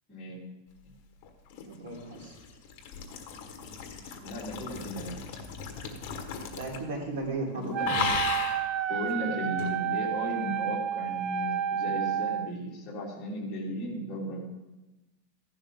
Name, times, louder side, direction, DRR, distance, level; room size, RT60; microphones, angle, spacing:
voice 1, 0.1-0.4 4.2-5.2 7.5-7.9 8.9-14.5, equal, 20° left, -5 dB, 2.9 m, -35 dB
sound 1, 1.2-7.0 7.2-7.5 7.8-8.7 9.6-9.7, left 6 dB, 35° left, 1.5 m, -36 dB
voice 2, 1.6-2.4 6.5-8.2, right 2 dB, 85° right, -1 dB, 3.9 m, -36 dB
Wind instrument woodwind instrument, 7.7-12.5, right 9 dB, 25° right, 0.3 m, -30 dB
15.0 x 11.5 x 3.8 m, 1.1 s
supercardioid pair, 175°, 0 cm